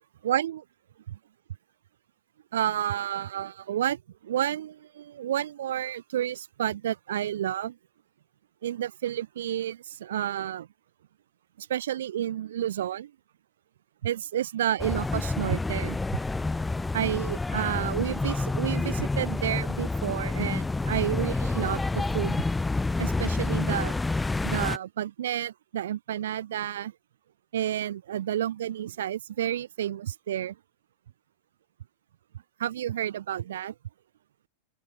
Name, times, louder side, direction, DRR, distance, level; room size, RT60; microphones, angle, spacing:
voice 1, 0.2-0.6 1.1-1.2 2.5-7.8 8.6-10.7 11.6-13.1 14.0-16.0 16.9-22.4 23.0-23.9 24.4-26.9 27.5-30.6 32.6-33.7, right 11 dB, 60° right, 3.6 m, -30 dB
sound 1, 14.8-24.8, left 3 dB, 10° left, 2.2 m, -28 dB
open air
figure-of-eight pair, 90°, 0 cm